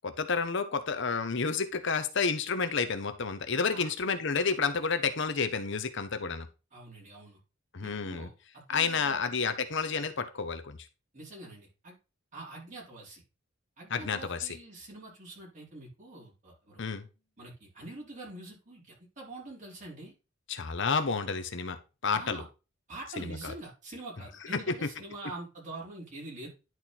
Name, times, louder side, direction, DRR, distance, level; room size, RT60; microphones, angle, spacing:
voice 1, 0.0-6.5 7.7-8.3 8.7-10.8 13.9-14.6 16.8-17.1 20.5-21.8 22.0-22.4 23.2-23.5 24.5-24.7, left 5 dB, 60° left, 0.8 m, -30 dB
voice 2, 6.7-7.4 7.8-9.2 11.1-12.0 12.3-13.2 13.8-16.8 17.4-20.1 22.1-22.5 22.9-26.5, right 2 dB, 35° right, 4.4 m, -45 dB
10.5 x 4.4 x 4.2 m
head